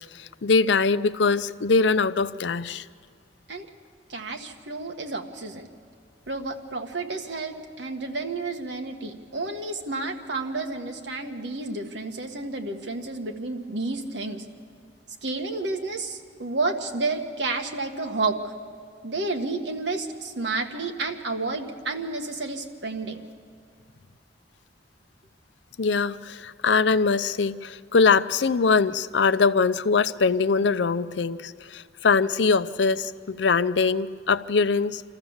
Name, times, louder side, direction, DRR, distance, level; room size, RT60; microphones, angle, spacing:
voice 1, 0.0-2.8 25.8-35.0, left 4 dB, 85° left, 13 dB, 0.6 m, -22 dB
voice 2, 4.1-5.7 6.3-14.4 15.2-18.5 19.0-23.2, right 3 dB, 80° right, 3 dB, 1.6 m, -31 dB
27.0 x 14.0 x 7.2 m, 2.1 s
head